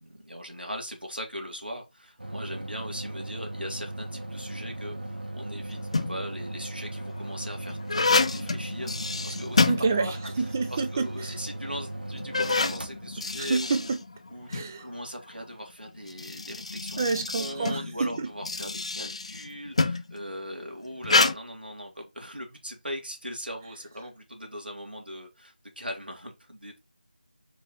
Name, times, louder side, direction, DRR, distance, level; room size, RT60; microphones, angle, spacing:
voice 1, 0.0-9.7 10.0-10.2 10.7-13.9 14.3-17.0 17.4-26.8, equal, 90° right, 3.3 m, -39 dB
sound 1, 2.2-14.8, right 1 dB, 70° right, 1.8 m, -38 dB
sound 2, 5.7-6.3 7.0-10.4 10.7-10.8 11.6-11.7 12.1-14.7 15.9-20.1 21.0-21.3, left 3 dB, 40° left, 0.6 m, -28 dB
voice 2, 9.7-11.4 13.4-14.0 14.5-14.9 17.0-18.3, right 4 dB, 15° right, 0.4 m, -28 dB
5.3 x 4.8 x 4.4 m
figure-of-eight pair, 165°, 5 cm